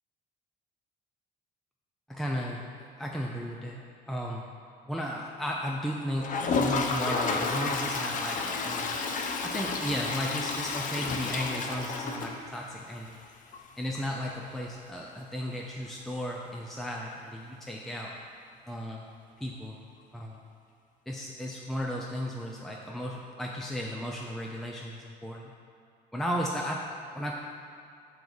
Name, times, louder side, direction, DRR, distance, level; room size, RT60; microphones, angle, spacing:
voice 1, 2.1-4.4 4.9-9.0 9.4-13.2 13.8-18.1 18.7-19.1 19.4-19.8 20.1-20.4 21.1-25.5 26.1-27.4, equal, ahead, -1 dB, 0.5 m, -35 dB
Toilet flush, 6.2-12.9 13.2-13.3 13.5-13.6 13.9-14.0 16.5-16.6 17.9-18.0, left 4 dB, 50° left, 0.6 m, -31 dB
6.1 x 4.7 x 5.4 m, 2.4 s
cardioid pair, 110°, 17 cm